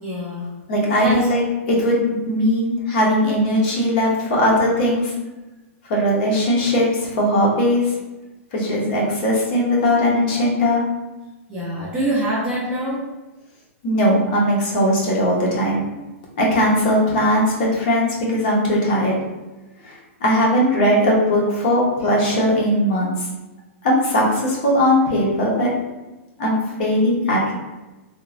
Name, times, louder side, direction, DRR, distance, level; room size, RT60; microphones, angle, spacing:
voice 1, 0.0-0.5 1.0-1.3 11.5-13.0, right 1 dB, 10° right, -8 dB, 0.3 m, -24 dB
voice 2, 0.7-5.1 5.9-7.9 8.5-10.8 13.8-15.8 16.4-19.2 19.8-19.9 20.2-23.3 23.8-25.7 26.4-27.5, equal, 40° left, -3 dB, 0.7 m, -19 dB
2.9 x 2.0 x 2.4 m, 1.1 s
hypercardioid pair, 175°, 8 cm